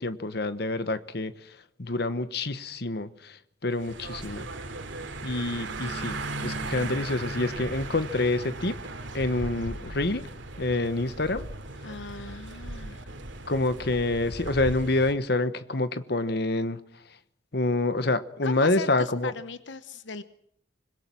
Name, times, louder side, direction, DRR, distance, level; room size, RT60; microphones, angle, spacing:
voice 1, 0.0-4.5 5.2-8.8 9.1-10.3 10.6-11.4 13.5-16.8 17.5-19.3, left 2 dB, 60° left, 12 dB, 1.2 m, -27 dB
sound 1, 3.7-15.1, right 2 dB, 85° right, 2.6 m, -37 dB
voice 2, 11.8-13.1 18.4-20.2, left 4 dB, 75° left, 11 dB, 1.0 m, -38 dB
25.5 x 21.5 x 6.1 m, 0.70 s
head